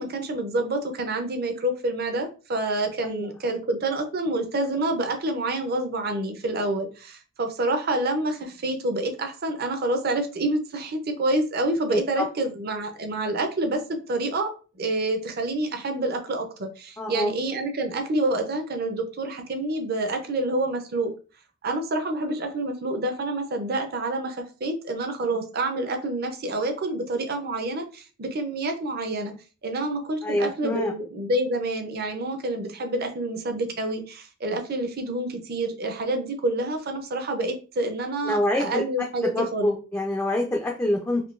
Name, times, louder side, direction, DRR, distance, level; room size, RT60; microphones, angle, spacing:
voice 1, 0.0-21.1 21.6-29.3 29.6-39.7, right 2 dB, 50° right, 6 dB, 0.6 m, -28 dB
voice 2, 3.0-3.6 11.9-12.3 17.0-17.3 30.2-30.9 38.2-38.8 39.2-41.2, left 1 dB, 15° left, 0 dB, 0.4 m, -26 dB
3.7 x 2.6 x 2.4 m, 0.35 s
head